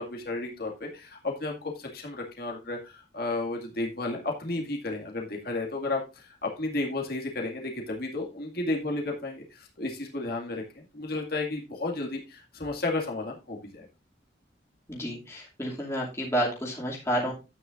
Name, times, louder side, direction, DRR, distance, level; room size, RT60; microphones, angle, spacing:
voice 1, 0.0-13.9, left 2 dB, 55° left, 0 dB, 2.2 m, -33 dB
voice 2, 14.9-17.3, equal, 15° left, -3 dB, 2.6 m, -30 dB
11.5 x 9.0 x 2.6 m, 0.27 s
head